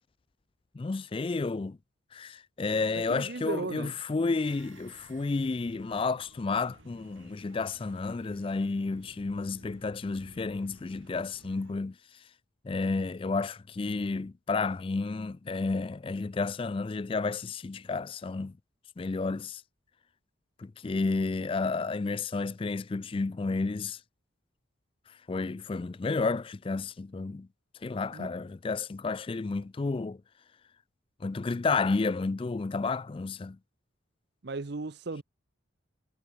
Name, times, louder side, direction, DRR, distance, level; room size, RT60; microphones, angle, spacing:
voice 1, 0.7-1.8 2.1-11.9 12.6-18.5 19.0-19.6 20.6-24.0 25.3-27.5 27.8-30.2 31.2-33.6, left 3 dB, 25° left, 0.3 m, -31 dB
voice 2, 2.9-3.9 28.1-28.3 34.4-35.2, right 3 dB, 55° right, 0.7 m, -36 dB
sound 1, 4.4-11.7, right 2 dB, 75° right, 6.5 m, -57 dB
head